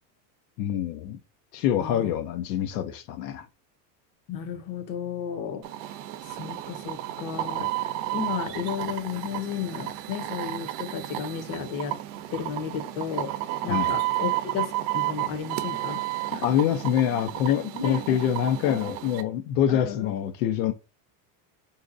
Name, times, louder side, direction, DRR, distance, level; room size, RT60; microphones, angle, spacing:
voice 1, 0.6-1.2 1.5-3.5 13.7-13.9 16.4-20.7, left 10 dB, 80° left, 0.6 m, -25 dB
voice 2, 1.8-2.1 4.3-5.6 6.3-12.0 12.3-13.3 13.6-16.0 16.3-16.4 17.7-18.2 18.6-18.9 19.7-20.1, left 7 dB, 45° left, 0.8 m, -33 dB
sound 1, 5.6-19.2, right 15 dB, 80° right, 0.7 m, -32 dB
3.6 x 2.8 x 2.5 m
supercardioid pair, 125°, 49 cm